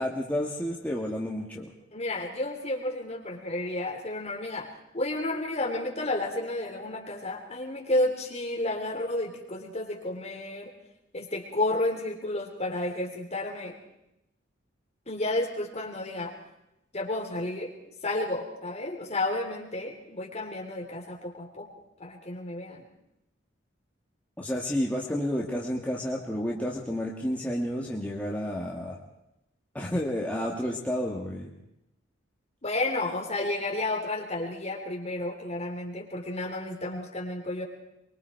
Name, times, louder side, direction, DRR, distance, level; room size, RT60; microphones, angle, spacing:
voice 1, 0.0-1.7 24.4-29.0 29.7-31.5, equal, 10° left, -2 dB, 1.9 m, -30 dB
voice 2, 1.9-10.7 11.1-13.8 15.1-16.3 16.9-17.7 18.0-21.7 22.0-22.9 32.6-37.6, left 2 dB, 35° left, 0 dB, 3.8 m, -31 dB
24.0 x 23.5 x 4.7 m, 0.86 s
head